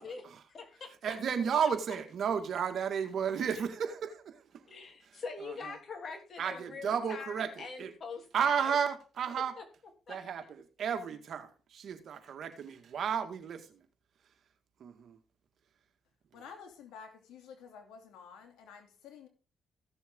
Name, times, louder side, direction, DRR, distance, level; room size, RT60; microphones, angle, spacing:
voice 1, 0.5-0.9 1.6-1.7 4.7-8.8 9.6-9.7 10.1-10.2, left 4 dB, 45° left, 3.2 m, -43 dB
voice 2, 1.0-4.4 5.4-5.8 6.4-7.9 8.3-9.6 10.1-13.8 14.8-15.2, right 7 dB, 60° right, 2.0 m, -33 dB
voice 3, 16.3-19.3, left 6 dB, 90° left, 2.9 m, -51 dB
15.5 x 7.1 x 3.8 m
cardioid pair, 90°, 0 cm